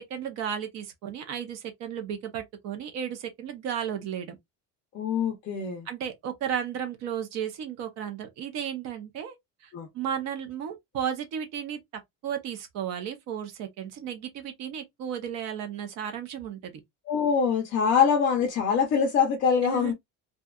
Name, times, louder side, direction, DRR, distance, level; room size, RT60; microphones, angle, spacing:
voice 1, 0.0-4.4 5.9-9.3 9.6-11.8 12.2-16.7 19.6-19.9, right 8 dB, 45° right, 0.6 m, -34 dB
voice 2, 4.9-5.9 9.7-9.9 17.1-19.9, left 6 dB, 30° left, 0.4 m, -24 dB
2.7 x 2.2 x 2.2 m
cardioid pair, 180°, 39 cm